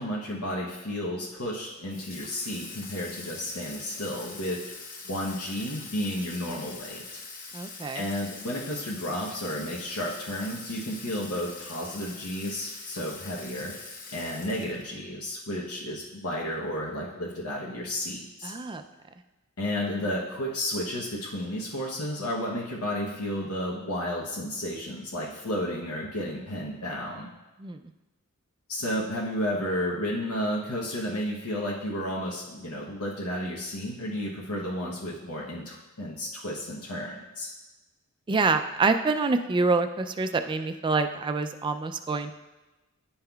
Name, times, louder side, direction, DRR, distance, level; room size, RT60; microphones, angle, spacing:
voice 1, 0.0-4.6 5.0-7.2 7.9-13.7 14.1-18.5 19.6-27.3 28.7-37.5, left 1 dB, 85° left, -4 dB, 0.9 m, -32 dB
Water tap faucet / Sink (filling or washing), 1.9-15.0, left 4 dB, 40° left, 0.9 m, -43 dB
voice 2, 7.5-8.1 18.4-18.8 27.6-27.8 38.3-42.4, right 3 dB, 20° right, 8 dB, 0.3 m, -26 dB
10.0 x 5.5 x 2.3 m, 1.1 s
head